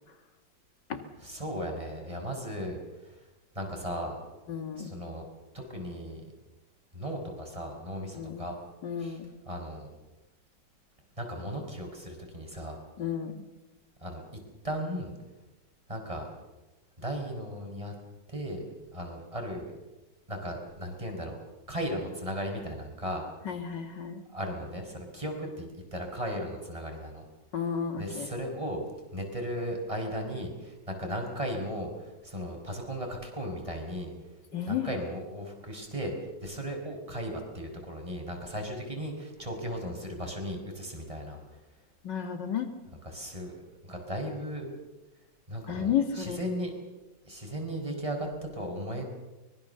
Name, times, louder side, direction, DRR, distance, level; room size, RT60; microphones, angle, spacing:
voice 1, 1.2-3.2 3.6-4.2 4.8-5.3 5.5-6.2 6.9-8.5 9.0-9.2 9.5-9.9 11.2-12.8 14.0-14.2 14.6-15.1 15.9-16.3 17.0-17.9 18.3-18.6 18.9-19.8 20.3-21.4 21.7-23.3 24.3-27.3 27.6-27.7 28.0-28.8 29.1-34.1 34.7-36.1 36.4-41.4 43.0-44.8 45.5-46.7 47.2-48.3 48.5-49.0, equal, 15° right, 2 dB, 5.2 m, -36 dB
voice 2, 4.5-4.9 8.1-8.4 8.8-9.3 13.0-13.4 23.5-24.2 27.5-28.3 34.5-34.9 42.0-42.7 45.7-46.4, left 8 dB, 80° left, 7 dB, 2.5 m, -32 dB
24.0 x 21.5 x 6.9 m, 1.1 s
omnidirectional pair, 1.9 m